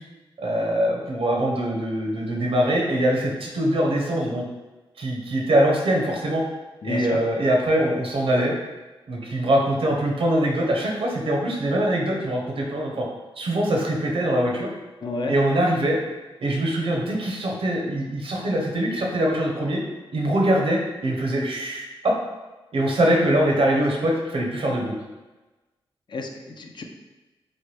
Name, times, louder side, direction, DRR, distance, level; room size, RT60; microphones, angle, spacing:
voice 1, 0.4-4.4 5.0-6.4 6.8-8.5 9.1-13.1 13.4-14.7 15.3-16.0 16.4-19.8 20.1-22.1 22.7-24.9, right 1 dB, 65° right, -1 dB, 0.7 m, -23 dB
voice 2, 6.8-7.2 15.0-15.3 26.1-26.8, left 2 dB, 50° left, 3 dB, 0.4 m, -31 dB
3.1 x 2.2 x 3.2 m, 1.1 s
cardioid pair, 55°, 10 cm